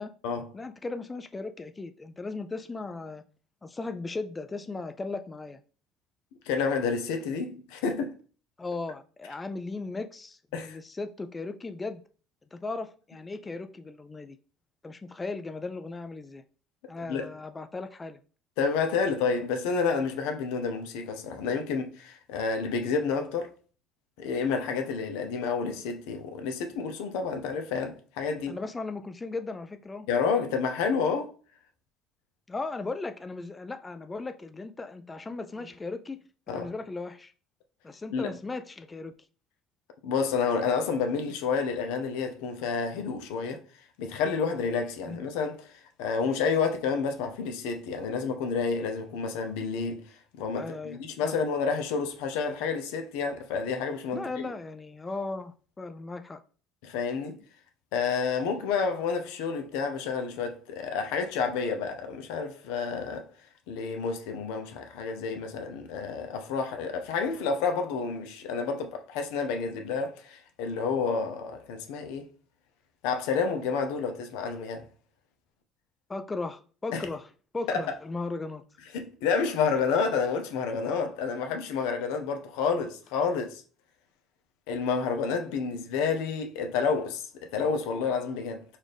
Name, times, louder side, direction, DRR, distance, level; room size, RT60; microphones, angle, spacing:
voice 1, 0.5-3.2 3.6-5.6 8.6-12.0 12.5-14.4 14.8-16.4 16.9-18.2 28.5-30.1 32.5-36.2 36.5-37.3 37.8-39.1 45.1-45.2 50.6-51.4 54.1-56.4 76.1-78.7, left 3 dB, 20° left, 0.3 m, -37 dB
voice 2, 6.5-8.1 10.5-10.8 17.1-17.3 18.6-23.5 24.2-28.6 30.1-31.3 36.5-36.7 38.1-38.3 40.0-43.6 44.0-45.6 46.0-50.1 50.4-54.2 56.8-57.4 57.9-63.2 63.7-72.3 73.0-74.9 76.9-77.1 77.7-77.8 78.9-83.6 84.7-88.6, left 5 dB, 80° left, 0.6 m, -29 dB
4.0 x 2.4 x 3.3 m
supercardioid pair, 80°, 0 cm